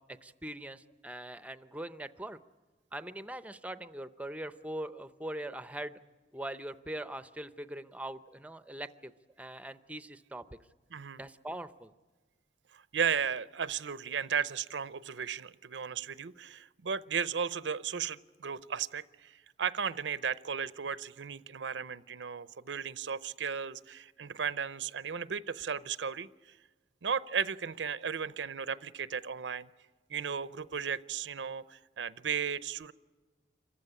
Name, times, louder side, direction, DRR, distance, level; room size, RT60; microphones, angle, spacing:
voice 1, 0.1-2.4 2.9-6.0 6.3-9.1 9.4-10.4 11.2-11.9, right 1 dB, 10° right, 12 dB, 0.6 m, -41 dB
voice 2, 10.9-11.2 12.7-26.3 27.0-29.7 30.1-32.9, right 7 dB, 80° right, 16 dB, 0.6 m, -35 dB
26.5 x 15.0 x 9.9 m, 1.3 s
head